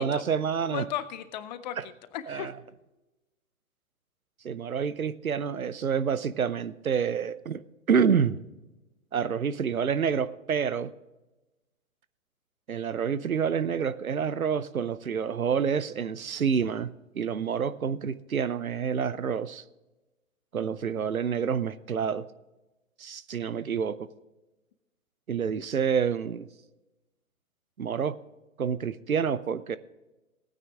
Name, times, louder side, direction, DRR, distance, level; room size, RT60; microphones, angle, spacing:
voice 1, 0.0-0.8 1.8-1.9 2.3-2.5 4.4-7.6 7.9-8.4 9.1-10.9 12.7-19.6 20.5-22.2 23.0-24.1 25.3-26.5 27.8-28.2 28.6-29.8, right 7 dB, 80° right, 15 dB, 0.7 m, -28 dB
voice 2, 0.7-2.6, left 10 dB, 35° left, 14 dB, 0.8 m, -36 dB
17.0 x 9.4 x 3.6 m, 1.1 s
figure-of-eight pair, 115°, 41 cm